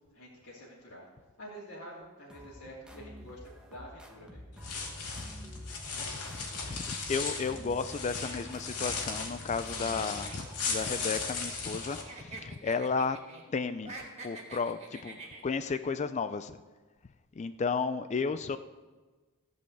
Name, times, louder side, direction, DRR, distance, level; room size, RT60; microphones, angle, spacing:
voice 1, 0.1-1.1 1.4-4.4, equal, 60° left, -9 dB, 2.8 m, -48 dB
sound 1, 2.3-11.8, equal, 5° right, 1.1 m, -51 dB
sound 2, 4.5-12.0, left 4 dB, 90° left, 2.3 m, -37 dB
voice 2, 6.0-13.2 13.5-14.0 14.2-16.6 17.4-18.6, left 5 dB, 30° left, 12 dB, 0.4 m, -33 dB
sound 3, 9.9-11.8 12.0-13.4 13.8-15.7, right 3 dB, 30° right, 2.0 m, -47 dB
15.0 x 5.4 x 8.1 m, 1.3 s
head